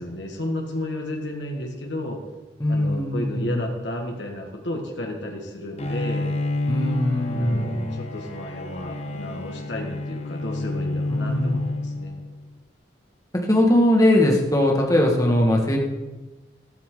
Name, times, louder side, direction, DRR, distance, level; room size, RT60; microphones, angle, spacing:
voice 1, 0.0-2.2 2.7-6.3 7.3-12.1, left 1 dB, 80° left, 1 dB, 1.9 m, -32 dB
voice 2, 2.6-3.6 6.7-8.0 11.1-11.6 13.5-15.8, left 1 dB, 20° left, 0 dB, 1.9 m, -20 dB
Bowed string instrument, 5.8-12.5, left 2 dB, 35° left, 1.0 m, -29 dB
13.5 x 13.0 x 4.0 m, 1.2 s
head